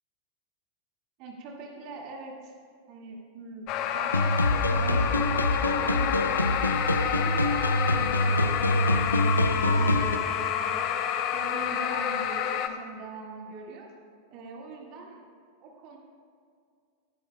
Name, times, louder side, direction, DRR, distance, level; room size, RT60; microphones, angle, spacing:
voice 1, 1.2-2.5 2.9-3.7 3.9-6.6 7.0-10.8 11.3-13.9 14.3-15.2 15.6-16.0, right 3 dB, 40° right, 0 dB, 1.9 m, -42 dB
sound 1, 3.7-12.7, left 9 dB, 40° left, 0.8 m, -29 dB
sound 2, 4.1-10.2, left 1 dB, 85° left, 0.5 m, -25 dB
18.5 x 12.5 x 2.3 m, 2.3 s
figure-of-eight pair, 90°, 0 cm